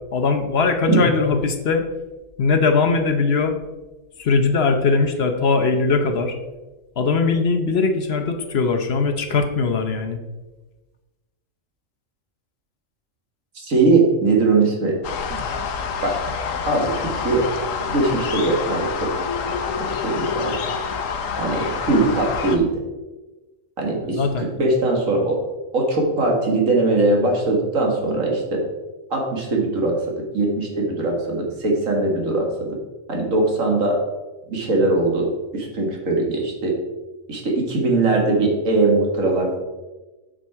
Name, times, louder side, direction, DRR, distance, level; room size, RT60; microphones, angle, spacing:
voice 1, 0.1-1.9 2.4-3.6 4.2-6.4 7.0-10.2 24.0-24.4, left 4 dB, 55° left, 6 dB, 1.0 m, -20 dB
voice 2, 13.6-15.0 15.3-15.4 16.0-16.2 16.7-17.5 17.9-19.1 19.8-20.5 21.4-22.8 23.8-25.4 25.7-28.6 29.1-32.8 33.1-34.0 34.5-36.7 37.3-39.6, right 2 dB, 85° right, 0 dB, 2.2 m, -21 dB
sound 1, 15.0-22.6, left 6 dB, 80° left, 1.2 m, -27 dB
8.7 x 6.0 x 4.6 m, 1.2 s
omnidirectional pair, 1.3 m